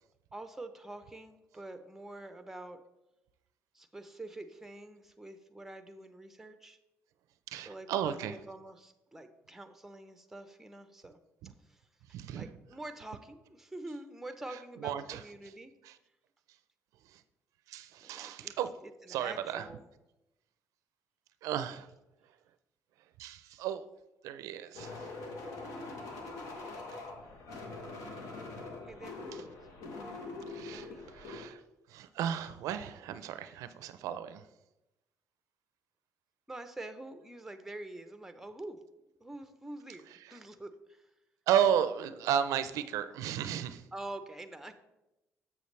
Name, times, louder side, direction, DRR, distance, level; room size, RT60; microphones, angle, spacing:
voice 1, 0.3-2.8 3.7-6.8 7.7-11.2 11.4-11.8 12.3-15.7 18.0-18.5 18.8-19.9 28.9-29.6 30.0-30.4 30.6-31.0 36.5-38.8 39.2-41.1 43.9-44.7, right 2 dB, 5° right, 8 dB, 0.6 m, -46 dB
voice 2, 7.5-8.3 11.4-11.5 12.1-12.5 14.8-15.2 15.8-16.0 17.1-17.2 17.7-18.7 19.1-19.7 21.4-21.9 23.2-23.8 24.2-25.1 29.3-29.4 30.5-31.6 31.9-34.4 40.1-40.4 41.5-43.8, right 9 dB, 85° right, 12 dB, 0.4 m, -33 dB
sound 1, 24.7-31.5, left 3 dB, 80° left, 1.2 m, -43 dB
7.1 x 6.9 x 3.2 m, 0.95 s
cardioid pair, 105°, 6 cm